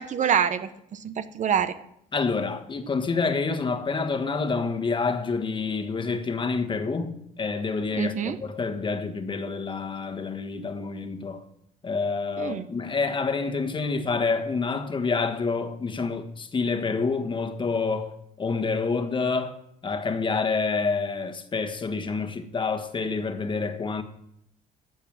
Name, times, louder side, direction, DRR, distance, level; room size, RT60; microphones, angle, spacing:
voice 1, 0.0-1.7 8.0-8.4 12.4-12.7, right 8 dB, 45° right, 0.9 m, -26 dB
voice 2, 2.1-8.1 8.4-11.4 11.8-18.1 18.4-19.5 19.8-24.0, left 4 dB, 30° left, 1.5 m, -28 dB
14.0 x 7.2 x 7.5 m
cardioid pair, 110°, 17 cm